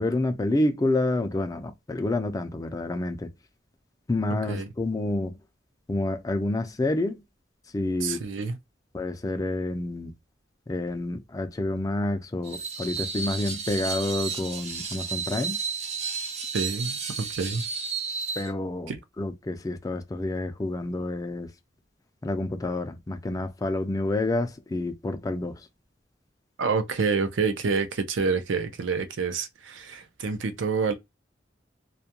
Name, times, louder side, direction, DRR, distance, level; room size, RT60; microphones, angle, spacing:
voice 1, 0.0-3.3 4.1-5.3 5.9-7.2 7.7-8.2 8.9-10.1 10.7-15.6 18.4-18.9 19.2-21.5 22.2-25.6, left 2 dB, 20° left, 0.4 m, -28 dB
voice 2, 8.0-8.6 16.5-17.6 18.9-19.0 26.6-30.9, right 4 dB, 90° right, 0.5 m, -28 dB
Screech, 12.4-18.5, right 5 dB, 35° right, 0.6 m, -32 dB
2.3 x 2.1 x 2.8 m
head